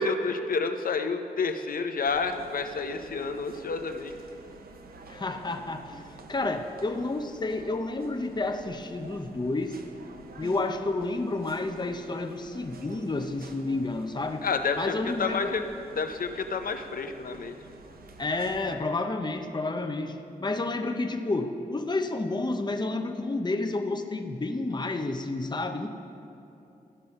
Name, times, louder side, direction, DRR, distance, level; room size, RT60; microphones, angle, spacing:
voice 1, 0.0-4.1 14.4-15.7 16.0-17.5, left 4 dB, 65° left, 7 dB, 0.7 m, -29 dB
sound 1, 2.1-18.7, right 3 dB, 70° right, 0.8 m, -49 dB
voice 2, 5.1-6.0 6.3-9.8 10.4-14.4 14.8-15.5 18.2-25.9, left 2 dB, 30° left, 6 dB, 0.7 m, -30 dB
13.5 x 5.4 x 5.3 m, 2.8 s
cardioid pair, 50°, 16 cm